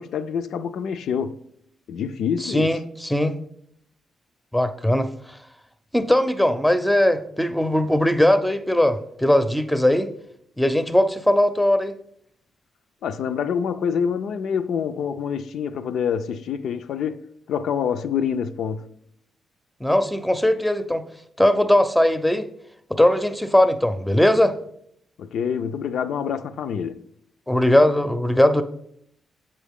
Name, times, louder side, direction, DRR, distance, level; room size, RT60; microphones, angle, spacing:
voice 1, 0.0-1.4 1.9-2.8 13.0-18.9 25.2-27.0, left 7 dB, 80° left, 0.3 m, -26 dB
voice 2, 2.4-3.3 4.5-5.4 5.9-10.1 10.6-11.9 19.8-21.0 21.4-22.5 22.9-24.6 27.5-28.6, left 1 dB, 5° left, 0.5 m, -19 dB
7.4 x 4.3 x 3.5 m
cardioid pair, 80°, 0 cm